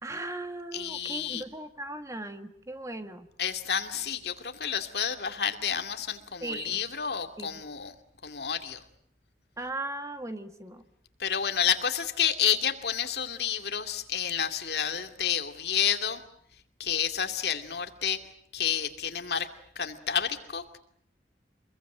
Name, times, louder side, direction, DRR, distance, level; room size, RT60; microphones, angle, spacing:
voice 1, 0.0-3.3 6.4-6.8 7.4-7.6 9.6-10.8, right 2 dB, 20° right, 8 dB, 1.7 m, -38 dB
voice 2, 0.7-1.4 3.4-7.9 8.2-8.8 11.2-16.2 16.8-18.2 18.5-19.5 19.8-20.8, left 8 dB, 65° left, 6 dB, 2.5 m, -30 dB
27.0 x 22.0 x 9.0 m, 0.64 s
head